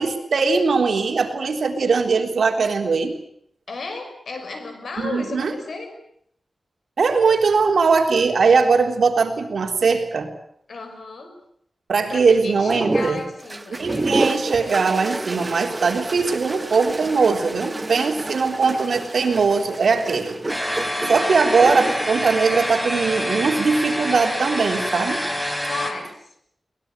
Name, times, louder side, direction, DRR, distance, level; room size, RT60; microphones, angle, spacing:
voice 1, 0.0-3.1 5.0-5.5 7.0-10.3 11.9-13.2 13.8-20.4 21.1-25.2, right 4 dB, 80° right, 4 dB, 3.6 m, -20 dB
voice 2, 3.7-5.9 10.7-11.4 12.1-14.4 17.9-18.0 20.8-21.7 25.6-26.3, left 3 dB, 75° left, 6 dB, 6.1 m, -34 dB
sound 1, 12.7-23.4 24.5-25.1, right 2 dB, 25° right, 1.0 m, -29 dB
sound 2, 20.5-25.9, equal, 10° left, 4.0 m, -26 dB
23.0 x 20.0 x 9.7 m, 0.69 s
wide cardioid pair, 125°, 0 cm